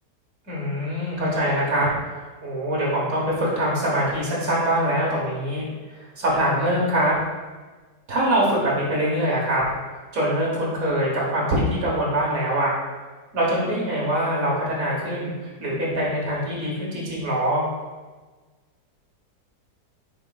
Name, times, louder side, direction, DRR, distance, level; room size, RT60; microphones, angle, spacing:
voice 1, 0.5-5.7 5.9-7.1 8.1-9.6 10.1-12.7 13.3-15.3 15.6-17.6, right 1 dB, 55° right, -5 dB, 1.6 m, -23 dB
5.0 x 4.4 x 2.3 m, 1.3 s
omnidirectional pair, 1.8 m